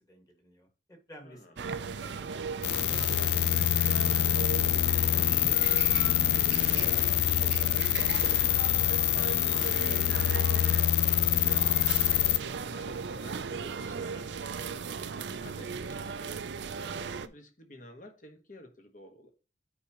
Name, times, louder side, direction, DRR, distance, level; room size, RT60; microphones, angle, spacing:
voice 1, 0.1-4.3 4.9-7.9, equal, 20° left, 1.8 m, -53 dB
voice 2, 1.2-1.5 8.7-19.3, left 1 dB, 50° left, 1.4 m, -51 dB
sound 1, 1.6-17.3, right 5 dB, 85° right, 0.5 m, -37 dB
sound 2, 2.6-12.4, left 13 dB, 70° left, 0.3 m, -26 dB
9.4 x 4.9 x 3.0 m
head